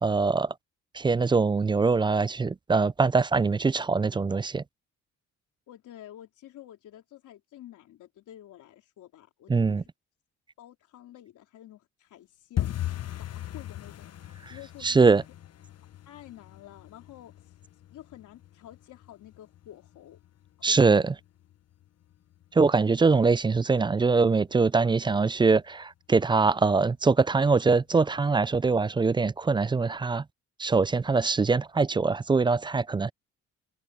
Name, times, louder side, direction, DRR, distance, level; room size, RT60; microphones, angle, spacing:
voice 1, 0.0-0.5 0.9-4.6 9.5-9.8 14.8-15.2 20.6-21.1 22.6-30.2 30.6-33.1, right 4 dB, 15° right, 0.3 m, -23 dB
voice 2, 5.7-9.9 10.6-12.8 13.3-15.1 16.1-17.5 17.9-20.2 20.7-21.1, left 12 dB, 80° left, 3.7 m, -49 dB
sound 1, 12.6-23.3 23.5-24.2 24.5-24.8 25.0-25.4 25.7-25.8 26.3-26.9 27.2-27.3 27.8-27.9, left 12 dB, 55° left, 1.1 m, -39 dB
cardioid pair, 90°, 30 cm